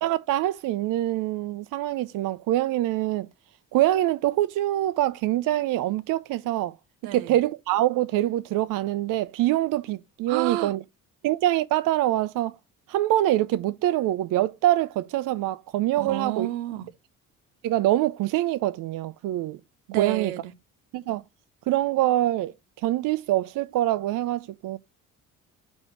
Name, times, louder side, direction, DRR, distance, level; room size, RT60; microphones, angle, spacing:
voice 1, 0.0-3.3 3.7-6.7 7.1-10.8 11.2-12.6 12.9-16.5 17.6-19.6 20.0-20.3 20.9-21.2 21.7-24.8, right 14 dB, 55° right, 0.6 m, -25 dB
voice 2, 7.0-7.4 10.3-10.7 16.0-16.9 19.9-20.5, right 14 dB, 70° right, 1.0 m, -30 dB
5.2 x 4.5 x 5.8 m
hypercardioid pair, 50°, 40 cm